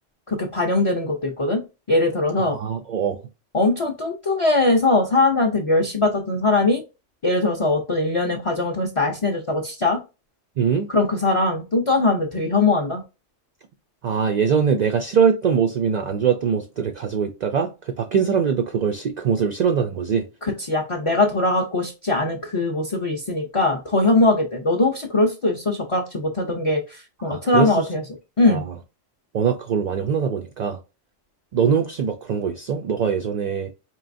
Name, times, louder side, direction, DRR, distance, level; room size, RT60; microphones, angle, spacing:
voice 1, 0.3-1.6 1.9-2.6 3.5-6.8 7.2-10.0 10.9-13.0 20.4-28.0 28.4-28.6, left 2 dB, 35° left, 0.5 m, -21 dB
voice 2, 2.5-3.2 10.6-10.9 14.0-20.2 27.2-27.9 28.5-28.6 29.3-30.8 31.5-33.7, right 7 dB, 65° right, 0.4 m, -22 dB
4.5 x 3.0 x 2.5 m
omnidirectional pair, 1.2 m